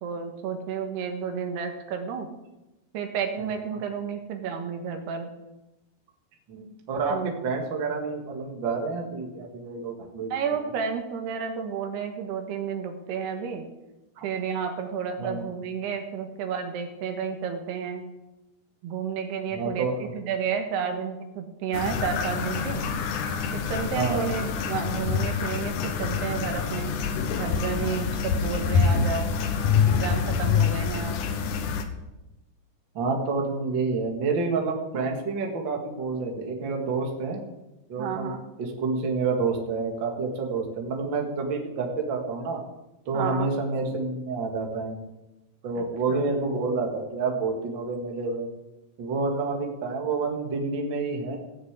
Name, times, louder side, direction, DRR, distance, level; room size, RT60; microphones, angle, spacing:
voice 1, 0.0-2.3 2.9-5.3 7.1-7.3 10.3-13.6 14.2-18.0 18.8-22.8 23.5-27.0 27.4-29.3 29.9-31.2 38.0-38.4 43.1-43.5 45.8-45.9 46.1-46.2, right 6 dB, 80° right, 5 dB, 3.5 m, -31 dB
voice 2, 6.5-10.6 14.2-14.3 15.2-15.5 19.5-20.2 20.9-21.0 23.9-24.3 27.8-28.0 32.9-37.4 37.9-42.6 43.1-45.0 45.6-48.5 49.0-51.4, right 4 dB, 40° right, 2 dB, 2.0 m, -29 dB
sound 1, 21.7-31.8, left 6 dB, 65° left, 2.1 m, -26 dB
16.5 x 6.9 x 8.2 m, 1.0 s
omnidirectional pair, 4.7 m